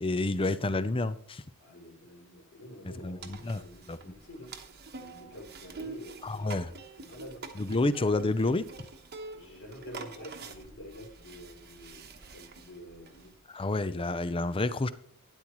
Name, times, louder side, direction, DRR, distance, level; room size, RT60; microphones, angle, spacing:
voice 1, 0.0-1.4 3.0-3.6 3.9-4.0 6.2-6.7 7.6-8.7 13.5-14.9, left 2 dB, 25° left, 14 dB, 0.5 m, -29 dB
voice 2, 1.6-4.5 4.9-6.5 7.0-7.5 9.3-13.3, equal, 65° left, -1 dB, 3.7 m, -48 dB
sound 1, 3.2-13.3, right 4 dB, 45° right, 1.1 m, -47 dB
12.5 x 9.9 x 3.1 m, 0.63 s
head